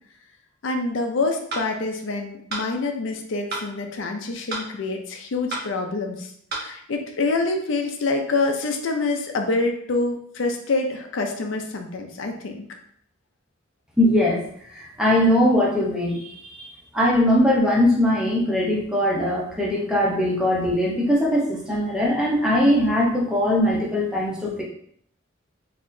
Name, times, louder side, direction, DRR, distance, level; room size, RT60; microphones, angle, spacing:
voice 1, 0.6-6.3 6.6-12.6, left 3 dB, 70° left, 4 dB, 0.5 m, -26 dB
sound 1, 1.5-1.7 2.5-2.7 3.5-3.7 4.5-4.7 5.5-5.7 6.5-6.7, right 2 dB, 55° right, 1.0 m, -30 dB
voice 2, 14.0-14.4 14.7-24.6, left 1 dB, 5° right, -4 dB, 0.7 m, -21 dB
4.0 x 2.9 x 2.6 m, 0.65 s
head